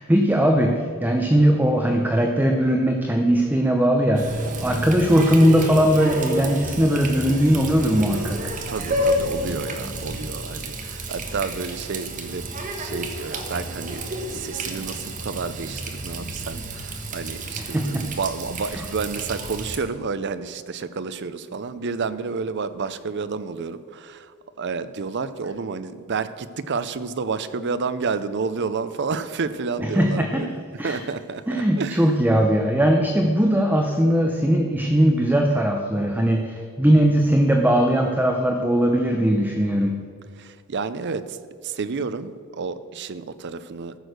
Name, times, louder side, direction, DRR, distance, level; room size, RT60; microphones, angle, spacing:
voice 1, 0.0-8.4 17.6-18.1 18.7-18.8 29.8-30.4 30.8-31.0 31.5-40.0, equal, 10° right, 3 dB, 0.6 m, -19 dB
Water tap faucet, 4.1-19.8, right 1 dB, 35° right, 1.2 m, -30 dB
voice 2, 8.7-12.5 12.7-14.0 14.3-32.1 40.4-41.4 41.6-44.0, right 4 dB, 55° right, 13 dB, 0.5 m, -30 dB
14.0 x 6.4 x 6.5 m, 2.3 s
head